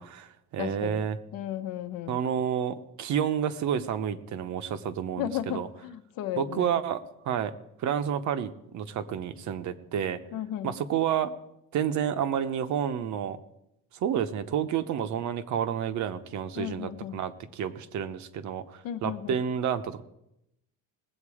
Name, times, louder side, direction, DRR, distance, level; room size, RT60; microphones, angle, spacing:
voice 1, 0.0-1.2 2.1-5.7 6.4-10.2 10.6-11.3 11.7-13.4 13.9-20.0, right 8 dB, 50° right, 11 dB, 0.8 m, -30 dB
voice 2, 0.6-1.0 1.3-2.2 5.2-6.8 10.3-10.8 16.6-17.2 18.8-19.4, left 11 dB, 65° left, 10 dB, 1.0 m, -34 dB
19.5 x 8.0 x 4.9 m, 0.85 s
cardioid pair, 155°, 36 cm